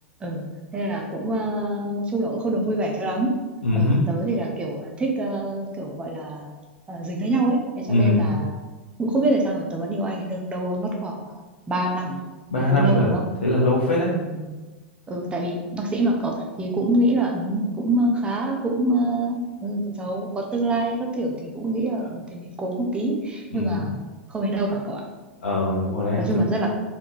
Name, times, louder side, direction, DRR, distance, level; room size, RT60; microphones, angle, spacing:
voice 1, 0.2-3.3 3.7-6.5 6.9-8.6 9.0-12.2 12.7-13.2 14.1-14.6 15.1-23.9 24.3-25.0 26.2-26.7, right 1 dB, 15° right, 0 dB, 0.9 m, -26 dB
voice 2, 3.6-4.0 7.9-8.3 12.5-13.1 13.4-14.1 23.5-23.8 25.4-26.2, left 1 dB, 75° left, -6 dB, 0.9 m, -21 dB
4.3 x 3.7 x 3.0 m, 1.2 s
figure-of-eight pair, 90°, 6 cm